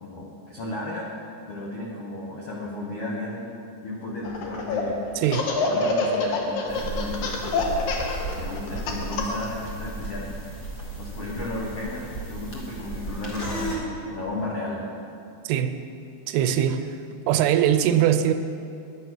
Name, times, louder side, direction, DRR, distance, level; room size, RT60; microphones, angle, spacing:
voice 1, 0.0-1.1 1.5-5.2 5.6-7.9 8.3-10.3 11.0-14.8, left 2 dB, 90° left, -3 dB, 1.3 m, -34 dB
Laughter, 4.2-4.8 5.2-9.5, left 4 dB, 70° left, 2.7 m, -26 dB
voice 2, 5.2-5.5 15.4-15.8 16.3-17.0 17.3-18.3, right 10 dB, 80° right, 8 dB, 2.5 m, -21 dB
sound 1, 6.7-13.8, right 2 dB, 55° left, 0.9 m, -34 dB
11.0 x 9.4 x 6.1 m, 2.6 s
omnidirectional pair, 4.7 m